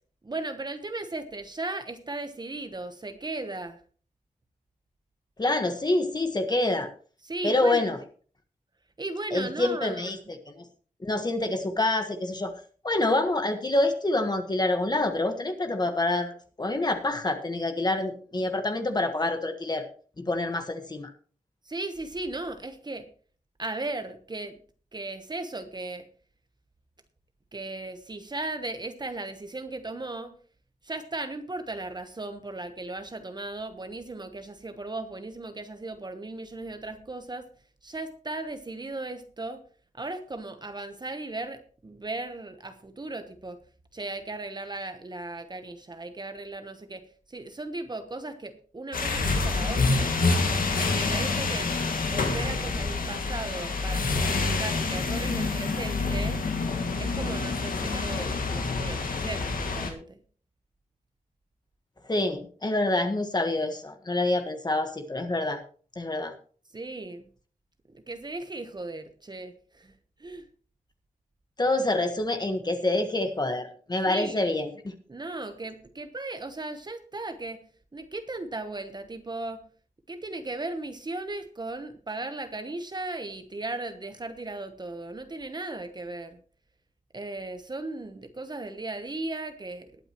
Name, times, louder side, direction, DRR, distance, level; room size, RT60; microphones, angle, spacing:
voice 1, 0.2-3.8 7.2-8.0 9.0-10.2 21.6-23.1 23.6-24.6 24.9-26.1 27.5-30.3 30.8-37.5 37.8-39.6 39.9-43.6 43.9-50.1 50.8-51.7 52.0-56.4 57.0-60.2 66.7-67.2 67.9-69.9 70.2-70.4 74.1-74.6 75.1-77.7 77.9-79.7 80.1-86.4 87.1-89.9, right 2 dB, 30° right, 8 dB, 1.1 m, -36 dB
voice 2, 5.4-6.9 7.4-8.0 9.3-10.5 11.0-12.5 12.8-19.8 20.2-21.1 62.0-65.6 65.9-66.3 71.6-74.9, left 2 dB, 30° left, 6 dB, 1.4 m, -27 dB
sound 1, 48.9-59.9, left 3 dB, 75° left, 2.2 m, -27 dB
20.0 x 8.9 x 3.0 m, 0.43 s
wide cardioid pair, 125°, 14 cm